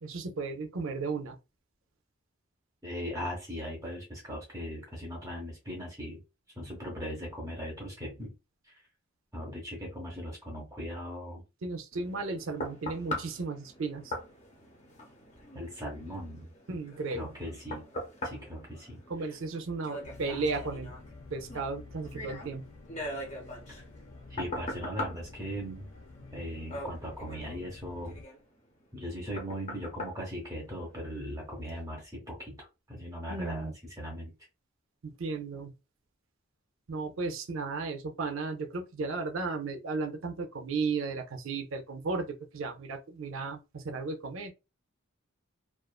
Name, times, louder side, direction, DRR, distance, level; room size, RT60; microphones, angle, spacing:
voice 1, 0.0-1.4 11.6-14.1 16.7-17.2 19.1-20.9 21.3-22.6 33.3-33.7 35.0-35.7 36.9-44.5, right 4 dB, 65° right, 0.5 m, -35 dB
voice 2, 2.8-6.2 6.6-8.3 8.7-8.8 9.3-11.4 15.5-16.5 17.1-17.8 18.2-19.0 24.3-25.9 26.3-28.1 28.9-34.3, equal, 15° right, 0.7 m, -39 dB
sound 1, 11.9-31.2 31.7-31.8, left 1 dB, 30° left, 0.7 m, -42 dB
sound 2, 20.0-28.3, left 3 dB, 80° left, 0.5 m, -49 dB
2.4 x 2.4 x 2.3 m
head